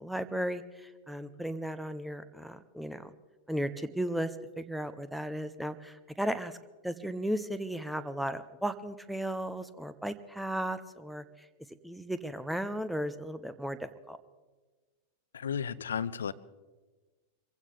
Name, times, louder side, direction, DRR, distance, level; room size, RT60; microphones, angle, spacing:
voice 1, 0.0-3.1 3.5-4.3 4.6-6.6 6.8-11.5 11.8-14.2, right 1 dB, ahead, 11 dB, 0.8 m, -35 dB
voice 2, 15.3-16.3, left 7 dB, 65° left, 18 dB, 0.5 m, -33 dB
25.5 x 16.0 x 3.4 m, 1.3 s
figure-of-eight pair, 90°, 0 cm